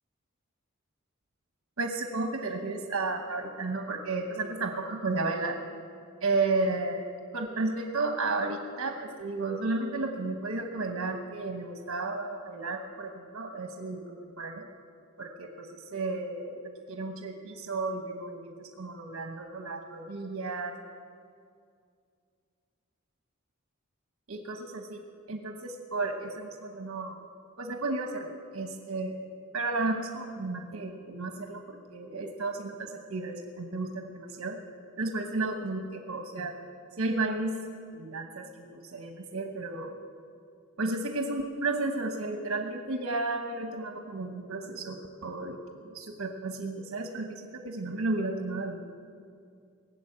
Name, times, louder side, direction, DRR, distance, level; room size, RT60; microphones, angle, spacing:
voice 1, 1.8-5.6 6.2-7.0 7.3-14.7 15.2-16.6 16.9-20.7 24.3-25.0 25.3-27.2 27.6-29.2 29.5-34.6 35.0-36.5 37.0-37.6 38.0-39.9 40.8-45.6 45.9-48.9, right 3 dB, 80° right, 4 dB, 1.0 m, -33 dB
19.0 x 7.1 x 8.6 m, 2.3 s
head